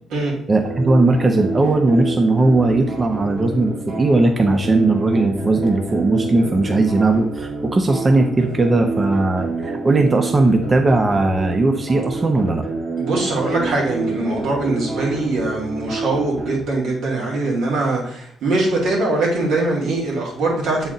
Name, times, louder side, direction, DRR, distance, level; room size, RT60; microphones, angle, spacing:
voice 1, 0.5-12.6, right 2 dB, 30° right, 5 dB, 0.6 m, -18 dB
sound 1, 0.6-16.6, right 3 dB, 45° right, 2.1 m, -28 dB
voice 2, 13.0-20.9, right 2 dB, 80° right, -2 dB, 2.2 m, -22 dB
7.1 x 4.0 x 3.9 m, 0.64 s
cardioid pair, 90°, 0 cm